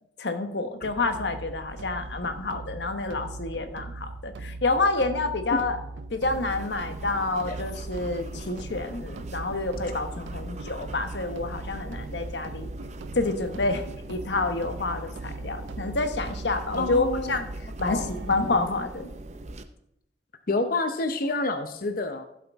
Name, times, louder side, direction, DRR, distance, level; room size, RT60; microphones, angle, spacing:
voice 1, 0.2-5.8 6.1-12.7 13.1-17.5 17.8-19.1, left 3 dB, 70° left, 8 dB, 1.1 m, -28 dB
sound 1, 0.8-18.7, right 2 dB, 90° right, 0.5 m, -39 dB
sound 2, 6.2-19.6, right 2 dB, 40° right, 0.6 m, -42 dB
voice 2, 16.8-17.3 17.8-18.1 20.5-22.3, left 3 dB, 50° left, 7 dB, 0.7 m, -28 dB
15.5 x 7.5 x 3.5 m, 0.80 s
head